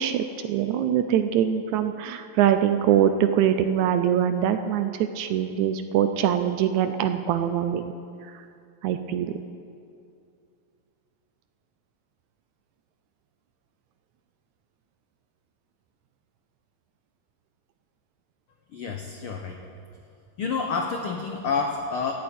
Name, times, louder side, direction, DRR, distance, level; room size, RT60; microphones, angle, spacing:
voice 1, 0.0-7.9 8.2-8.4 8.8-9.3, right 10 dB, 80° right, 9 dB, 1.8 m, -23 dB
voice 2, 18.7-19.6 20.4-22.1, left 5 dB, 90° left, 3 dB, 1.2 m, -28 dB
17.0 x 15.0 x 4.4 m, 2.5 s
omnidirectional pair, 3.7 m